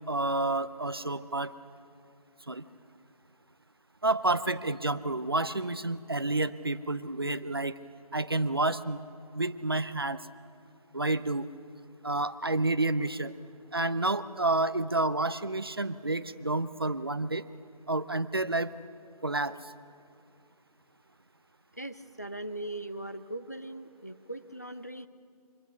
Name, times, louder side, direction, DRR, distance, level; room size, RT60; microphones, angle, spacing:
voice 1, 0.1-1.5 2.5-2.6 4.0-7.8 8.1-9.0 9.3-10.2 10.9-11.5 12.0-13.3 13.7-17.4 17.9-18.7 19.2-19.6, right 2 dB, 35° right, 13 dB, 0.6 m, -29 dB
voice 2, 21.8-25.1, right 1 dB, 25° left, 11 dB, 0.5 m, -40 dB
25.5 x 21.0 x 7.1 m, 2.4 s
figure-of-eight pair, 180°, 20 cm